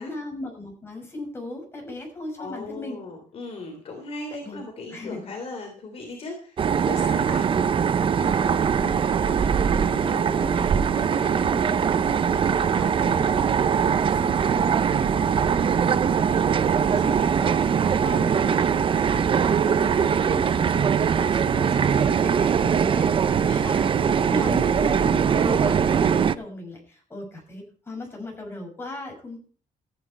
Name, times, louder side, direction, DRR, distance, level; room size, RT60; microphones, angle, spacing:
voice 1, 0.0-3.0 4.4-4.6 4.9-5.3 8.2-8.5 8.8-18.7 19.0-23.1 23.6-23.9 24.3-29.4, left 2 dB, 15° left, 1 dB, 6.3 m, -37 dB
voice 2, 2.4-7.5 22.5-24.3, left 2 dB, 45° left, 3 dB, 3.3 m, -38 dB
sound 1, 6.6-26.3, right 7 dB, 40° right, 0.6 m, -21 dB
14.0 x 9.9 x 4.5 m, 0.42 s
cardioid pair, 165°, 14 cm